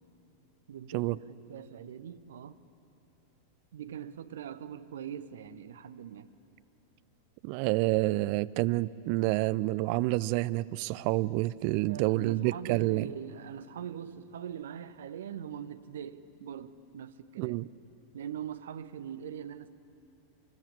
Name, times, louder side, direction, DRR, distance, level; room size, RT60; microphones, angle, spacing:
voice 1, 0.7-2.6 3.7-6.3 11.8-17.6 18.1-19.7, right 9 dB, 60° right, 0.9 m, -42 dB
voice 2, 7.4-13.1 17.4-17.7, right 19 dB, 45° right, 0.5 m, -28 dB
24.5 x 20.0 x 8.6 m
figure-of-eight pair, 90°, 0 cm